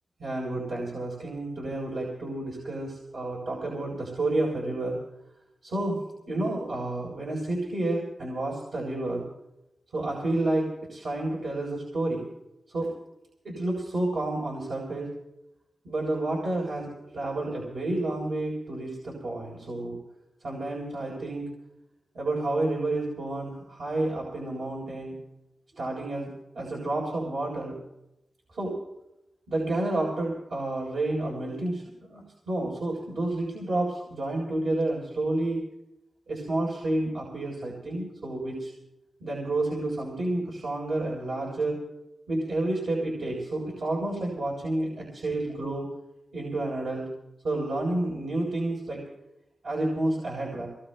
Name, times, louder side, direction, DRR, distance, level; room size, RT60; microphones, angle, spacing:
voice 1, 0.2-5.0 5.6-6.0 6.3-9.2 9.9-12.3 12.7-12.9 13.4-15.1 15.8-20.0 20.4-21.5 22.1-25.1 25.8-26.3 26.5-27.8 28.5-28.7 29.5-35.6 36.3-38.7 39.2-41.8 42.3-45.9 46.3-47.1 47.4-49.0 49.6-50.7, right 2 dB, 75° right, -3 dB, 3.9 m, -30 dB
26.0 x 18.5 x 2.2 m, 0.91 s
cardioid pair, 60°, 0 cm